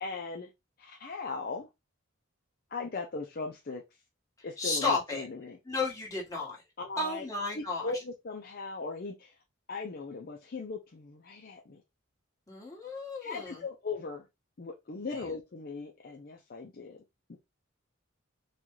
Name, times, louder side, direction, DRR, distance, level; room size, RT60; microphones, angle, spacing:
voice 1, 0.0-0.5 0.8-1.7 2.7-3.8 4.4-5.6 6.8-7.2 7.5-9.4 9.7-11.8 13.2-14.3 14.6-17.0 17.3-17.4, left 4 dB, 45° left, 0.5 m, -38 dB
voice 2, 4.6-5.3 5.6-6.6 7.0-7.9 12.5-13.6, left 3 dB, 15° left, 1.4 m, -33 dB
4.2 x 2.3 x 3.1 m
head